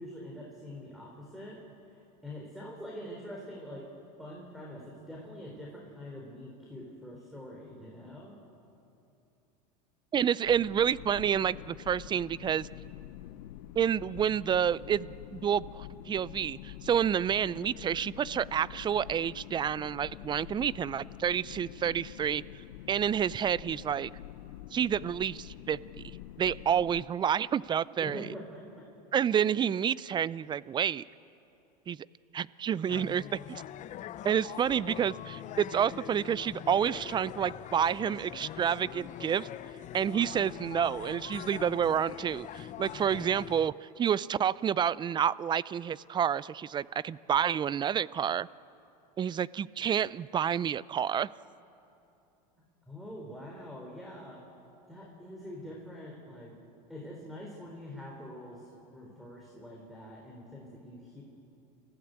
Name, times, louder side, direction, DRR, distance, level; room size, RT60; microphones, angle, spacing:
voice 1, 0.0-1.6 1.9-3.9 4.2-8.3 28.0-28.6 52.9-54.4 54.9-56.5 56.9-61.2, left 1 dB, ahead, -2 dB, 4.3 m, -45 dB
voice 2, 10.1-12.7 13.8-22.4 22.9-24.1 24.7-26.1 26.4-28.3 29.1-31.0 31.9-32.1 32.3-33.6 34.2-39.5 39.9-48.5 49.2-51.3, right 8 dB, 20° right, 21 dB, 0.4 m, -29 dB
sound 1, 10.4-27.1, left 14 dB, 80° left, 0.8 m, -46 dB
sound 2, 32.9-43.7, left 11 dB, 35° left, 0.7 m, -43 dB
29.0 x 15.5 x 8.2 m, 2.8 s
supercardioid pair, 110°, 21 cm